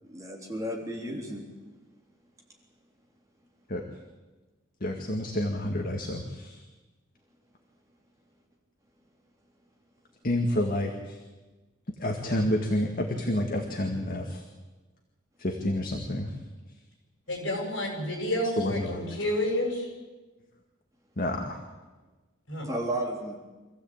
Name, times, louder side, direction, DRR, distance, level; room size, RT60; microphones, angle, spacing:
voice 1, 0.0-1.4 22.6-23.4, right 1 dB, 15° right, -1 dB, 3.5 m, -33 dB
voice 2, 4.8-6.6 10.2-11.2 12.0-14.4 15.4-16.3 18.6-19.2 21.2-21.6, left 1 dB, 45° left, 2 dB, 2.0 m, -29 dB
voice 3, 17.3-19.9 22.5-22.7, left 1 dB, 60° left, 0 dB, 7.4 m, -30 dB
26.0 x 15.5 x 8.8 m, 1.2 s
head